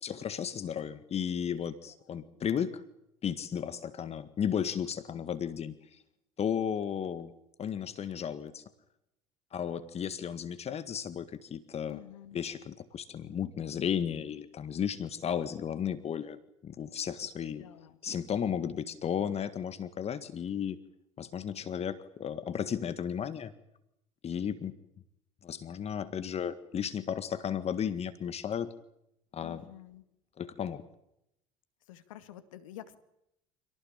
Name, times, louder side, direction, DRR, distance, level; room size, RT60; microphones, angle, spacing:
voice 1, 0.0-2.8 3.2-6.0 6.4-7.3 7.6-8.6 9.5-12.0 12.3-16.4 16.6-17.7 18.0-20.8 21.2-23.5 24.2-24.8 25.4-28.7 29.3-29.6 30.4-30.8, left 8 dB, 40° left, 12 dB, 1.8 m, -34 dB
voice 2, 11.9-12.4 17.4-18.0 29.4-30.0 31.9-33.0, left 12 dB, 80° left, 11 dB, 2.3 m, -49 dB
27.0 x 18.5 x 8.8 m, 0.82 s
hypercardioid pair, 70°, 17 cm